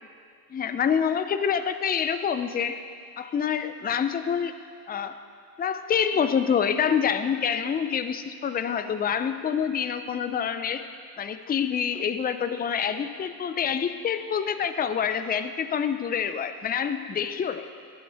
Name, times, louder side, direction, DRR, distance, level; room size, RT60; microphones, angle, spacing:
voice 1, 0.5-2.8 3.2-4.5 4.9-5.2 5.6-10.9 11.2-17.7, left 7 dB, 25° left, 10 dB, 0.3 m, -27 dB
12.5 x 8.9 x 3.4 m, 2.2 s
wide cardioid pair, 140°, 37 cm